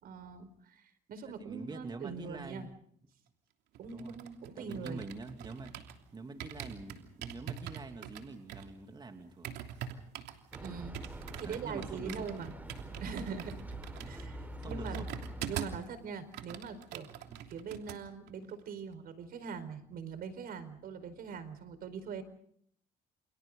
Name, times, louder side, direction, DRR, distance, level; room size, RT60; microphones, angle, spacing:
voice 1, 0.0-2.7 3.8-5.0 10.6-12.5 13.0-13.6 14.0-14.4 14.6-15.0 15.5-17.1 17.5-22.2, right 6 dB, 60° right, 11 dB, 4.7 m, -42 dB
voice 2, 1.2-2.7 3.9-4.2 4.5-5.8 6.1-9.6 11.4-12.3 14.0-14.3 14.6-15.1 15.4-15.6 17.3-17.4, right 3 dB, 25° right, 5 dB, 2.9 m, -45 dB
sound 1, 3.7-6.0 6.4-15.9 16.2-18.0 18.3-18.5, right 10 dB, 85° right, 3.0 m, -44 dB
sound 2, 10.5-16.0, right 1 dB, 10° right, 4.7 m, -45 dB
29.5 x 28.5 x 3.9 m, 0.64 s
cardioid pair, 110°, 17 cm